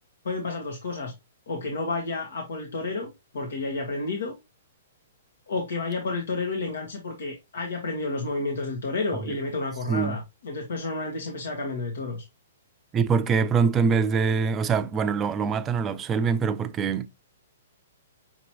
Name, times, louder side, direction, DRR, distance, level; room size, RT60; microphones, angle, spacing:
voice 1, 0.2-1.1 1.5-4.3 5.5-12.2, left 3 dB, 80° left, 1.3 m, -31 dB
voice 2, 12.9-17.1, right 5 dB, 20° right, 0.5 m, -24 dB
5.9 x 3.0 x 2.8 m
hypercardioid pair, 150°, 0 cm